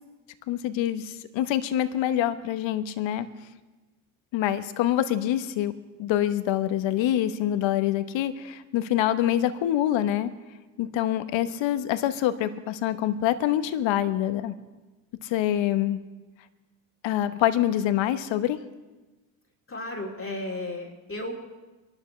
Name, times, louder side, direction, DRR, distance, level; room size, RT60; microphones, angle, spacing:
voice 1, 0.5-3.3 4.3-5.7 6.0-10.3 10.8-14.5 15.2-16.0 17.0-18.6, left 12 dB, 65° left, 11 dB, 1.2 m, -25 dB
voice 2, 19.7-21.3, left 1 dB, 25° left, 0 dB, 2.5 m, -34 dB
25.0 x 12.0 x 3.3 m, 1.2 s
hypercardioid pair, 60°, 50 cm